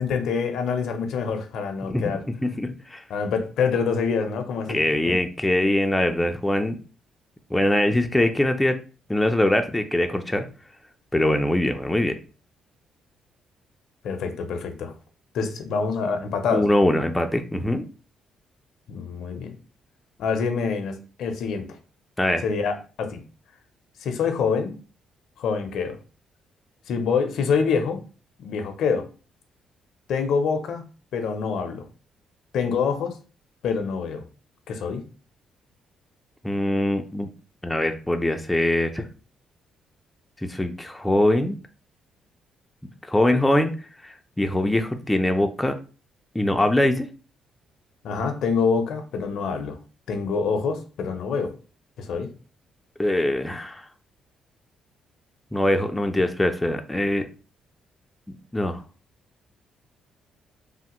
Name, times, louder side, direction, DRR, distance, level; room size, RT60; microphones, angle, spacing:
voice 1, 0.0-2.2 3.1-4.8 5.1-5.2 14.0-14.9 15.3-16.7 18.9-19.5 20.2-21.7 22.4-23.2 24.0-24.7 25.4-26.0 26.9-28.0 28.4-29.1 30.1-30.8 31.1-31.8 32.5-33.2 33.6-34.2 34.7-35.0 48.0-49.8 50.1-51.5 52.0-52.3, left 5 dB, 75° left, 7 dB, 0.5 m, -26 dB
voice 2, 2.4-3.0 4.7-6.8 7.5-8.8 9.1-10.5 11.1-12.2 16.5-17.9 22.2-22.4 36.4-37.3 37.6-39.1 40.4-41.6 43.1-43.7 44.0-45.8 46.3-47.1 53.0-53.9 55.5-57.3 58.5-58.8, left 1 dB, 10° left, 6 dB, 0.4 m, -22 dB
3.2 x 2.1 x 2.9 m, 0.35 s
cardioid pair, 90°, 0 cm